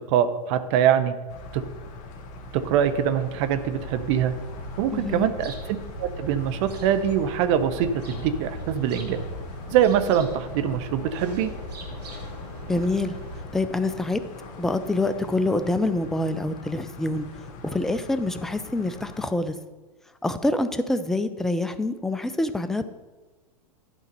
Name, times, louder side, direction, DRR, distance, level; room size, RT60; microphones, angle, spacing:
voice 1, 0.1-1.1 1.5-1.6 2.5-4.3 4.8-5.5 6.0-9.2 9.7-11.5, right 9 dB, 45° right, 11 dB, 0.8 m, -23 dB
sound 1, 1.3-19.3, left 2 dB, 35° left, 1.3 m, -42 dB
sound 2, 3.8-13.5, equal, 75° right, 1.7 m, -39 dB
voice 2, 4.9-5.3 12.7-13.2 13.5-14.2 14.6-17.3 17.6-19.6 20.2-22.9, left 2 dB, ahead, 11 dB, 0.3 m, -26 dB
11.5 x 4.0 x 5.3 m, 1.3 s
hypercardioid pair, 115°, 21 cm